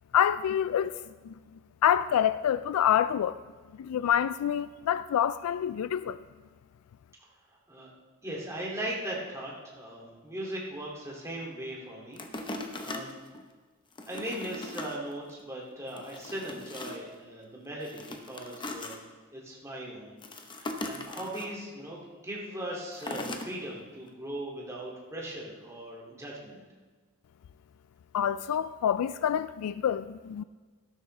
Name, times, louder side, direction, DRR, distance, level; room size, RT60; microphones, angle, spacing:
voice 1, 0.1-1.0 1.3-1.4 1.8-3.4 3.8-6.2 28.1-30.4, left 9 dB, 80° left, 0.3 m, -27 dB
voice 2, 8.2-13.2 14.1-19.0 19.3-26.6, right 1 dB, 15° right, 2.3 m, -39 dB
sound 1, 12.2-13.4 13.9-15.0 15.4-15.5 15.9-17.1 17.8-19.0 20.2-21.5 22.9-23.5 24.1-24.2, left 2 dB, 20° left, 0.8 m, -39 dB
13.0 x 12.5 x 3.3 m
head